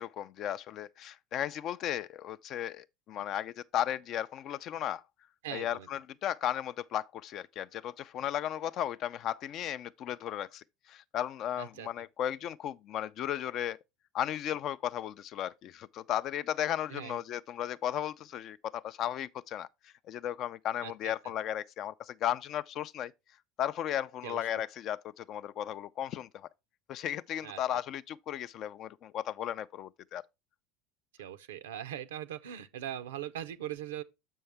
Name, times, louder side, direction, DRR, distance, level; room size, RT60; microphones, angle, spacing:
voice 1, 0.0-5.0 5.5-13.8 14.1-23.1 23.6-26.5 26.9-30.2, left 11 dB, 50° left, 0.4 m, -35 dB
voice 2, 5.4-5.9 11.6-11.9 16.9-17.2 20.8-21.1 24.2-24.4 27.4-27.6 31.2-34.0, right 11 dB, 80° right, 0.5 m, -40 dB
7.0 x 5.4 x 3.4 m
hypercardioid pair, 80°, 0 cm